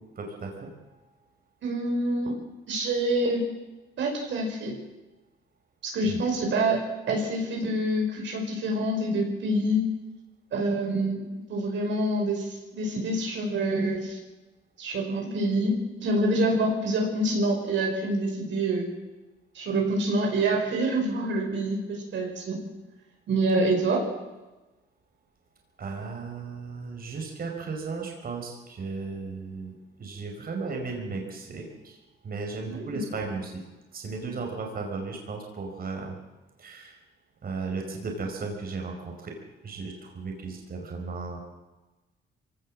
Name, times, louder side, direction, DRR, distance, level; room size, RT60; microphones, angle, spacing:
voice 1, 0.1-0.7 6.1-6.2 25.8-32.0 32.2-33.6 33.9-36.2 36.6-37.0 37.4-39.4 39.6-41.4, right 4 dB, 50° right, 2 dB, 5.2 m, -35 dB
voice 2, 1.6-2.4 2.7-3.5 4.0-4.8 5.8-9.9 10.5-11.2 11.5-14.2 14.8-18.9 19.5-22.6 23.3-24.1 32.7-33.0, right 1 dB, 70° right, 1 dB, 5.4 m, -26 dB
23.5 x 18.0 x 7.6 m, 1.1 s
cardioid pair, 90°, 20 cm